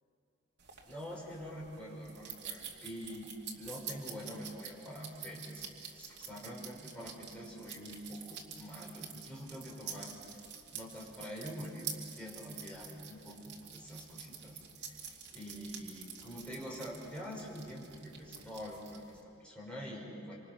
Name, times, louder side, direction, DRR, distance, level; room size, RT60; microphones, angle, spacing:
sound 1, 0.6-19.2, right 7 dB, 55° right, 2.7 m, -48 dB
voice 1, 0.9-3.3 3.6-10.1 10.7-11.9 12.1-14.6 14.9-20.3, equal, 5° left, -4 dB, 5.6 m, -45 dB
27.0 x 26.0 x 6.2 m, 2.7 s
head